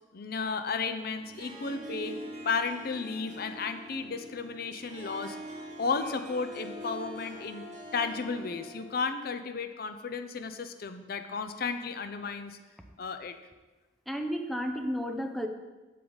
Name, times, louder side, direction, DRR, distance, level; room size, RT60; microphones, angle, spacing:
voice 1, 0.1-2.2 2.4-5.4 5.8-7.6 7.9-12.6 13.0-13.4, left 4 dB, 60° left, 9 dB, 0.6 m, -33 dB
Harp, 1.1-9.0, equal, 45° right, 1.5 m, -44 dB
voice 2, 14.1-15.5, equal, ahead, 4 dB, 0.7 m, -32 dB
8.5 x 7.5 x 4.0 m, 1.2 s
head